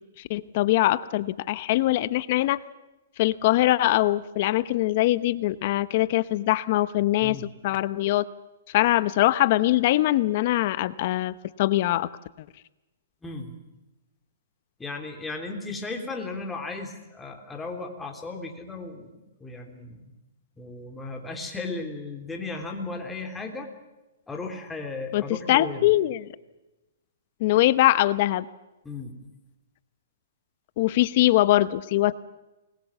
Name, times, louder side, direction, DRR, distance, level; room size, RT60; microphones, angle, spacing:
voice 1, 0.3-2.6 3.2-7.4 7.6-8.2 8.7-12.1 25.1-25.2 25.5-26.2 27.4-28.4 30.8-32.1, left 16 dB, 45° left, 16 dB, 0.8 m, -22 dB
voice 2, 13.2-13.5 14.8-20.2 20.6-23.7 24.3-26.0 28.8-29.1, left 3 dB, 10° left, 3 dB, 3.4 m, -35 dB
28.0 x 21.5 x 7.3 m, 1.0 s
hypercardioid pair, 145°, 0 cm